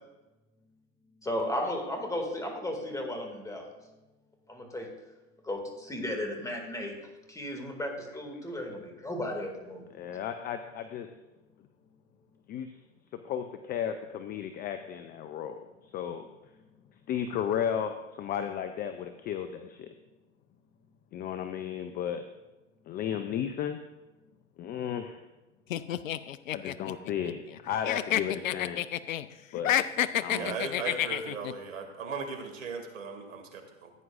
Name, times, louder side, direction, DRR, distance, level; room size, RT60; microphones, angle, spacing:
voice 1, 1.2-3.7 4.5-4.9 5.4-7.0 7.3-9.8, left 1 dB, 10° left, 3 dB, 2.3 m, -34 dB
voice 2, 9.9-11.1 12.5-12.7 13.2-16.3 17.1-19.9 21.1-22.3 22.9-23.8 24.6-25.2 26.5-28.8 29.5-29.8 30.2-30.6, left 9 dB, 25° left, 8 dB, 0.6 m, -34 dB
sound 1, 25.7-27.6 27.8-29.2 29.6-31.5, left 11 dB, 85° left, 0.6 m, -29 dB
voice 3, 30.3-33.9, right 5 dB, 80° right, 4 dB, 2.4 m, -37 dB
16.0 x 9.3 x 2.5 m, 1.1 s
hypercardioid pair, 110°, 39 cm